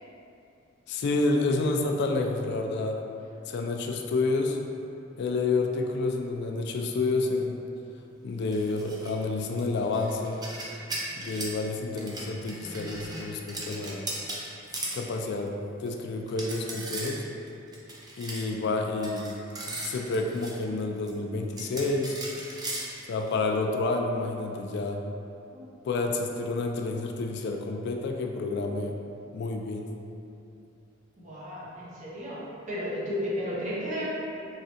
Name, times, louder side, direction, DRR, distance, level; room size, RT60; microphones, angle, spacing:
voice 1, 0.9-3.0 3.5-4.6 5.2-7.6 8.2-10.4 11.2-14.0 14.9-15.5 15.8-17.2 18.2-19.2 19.6-22.2 23.1-25.0 25.8-29.0 29.3-29.9, left 3 dB, 60° left, 2 dB, 0.3 m, -29 dB
sound 1, 8.5-9.1 9.4-11.6 12.0-15.0 15.5-15.6 15.9-16.0 16.3-17.2 17.5-18.5 19.0-20.5 21.1-21.2 21.6-23.4, right 2 dB, 20° right, 0.5 m, -37 dB
voice 2, 31.2-34.0, equal, 40° right, -9 dB, 1.0 m, -33 dB
3.7 x 3.2 x 2.8 m, 2.7 s
head